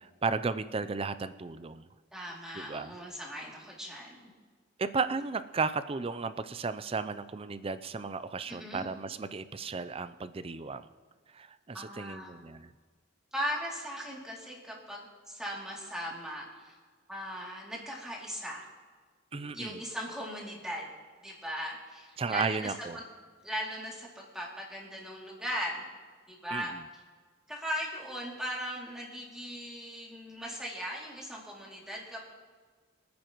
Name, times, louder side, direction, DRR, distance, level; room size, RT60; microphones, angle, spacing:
voice 1, 0.0-1.8 2.5-2.9 4.8-10.9 11.3-12.7 19.3-19.8 22.2-23.0 26.5-26.8, right 4 dB, 30° right, 13 dB, 0.4 m, -34 dB
voice 2, 2.1-4.2 8.5-8.9 11.7-12.3 13.3-16.7 17.1-18.7 19.5-20.9 21.2-23.0 23.4-25.8 26.3-26.7 27.5-32.3, equal, 5° right, -4 dB, 2.6 m, -38 dB
25.5 x 9.5 x 3.0 m, 1.6 s
head